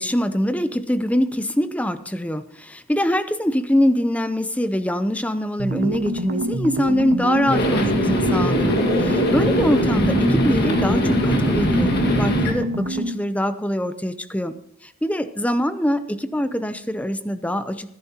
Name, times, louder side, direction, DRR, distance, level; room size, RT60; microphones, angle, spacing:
voice 1, 0.0-11.9 12.2-14.5 14.8-17.9, equal, 5° left, 11 dB, 0.6 m, -23 dB
sound 1, 5.6-13.3, right 1 dB, 55° right, 1.4 m, -26 dB
sound 2, 7.5-12.5, equal, 50° left, 1.8 m, -21 dB
25.0 x 10.5 x 2.9 m, 0.77 s
head